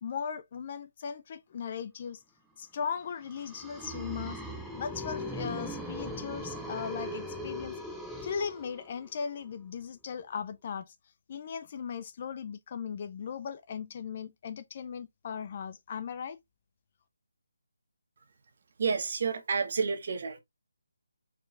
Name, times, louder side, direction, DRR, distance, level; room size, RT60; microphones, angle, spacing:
voice 1, 0.0-2.2 2.6-4.4 4.8-7.8 8.2-10.9 11.3-16.4, left 6 dB, 35° left, 0.4 m, -38 dB
sound 1, 3.2-9.1, equal, ahead, 0.7 m, -39 dB
voice 2, 18.8-20.4, right 5 dB, 50° right, 1.0 m, -30 dB
4.4 x 3.8 x 2.4 m
figure-of-eight pair, 155°, 0 cm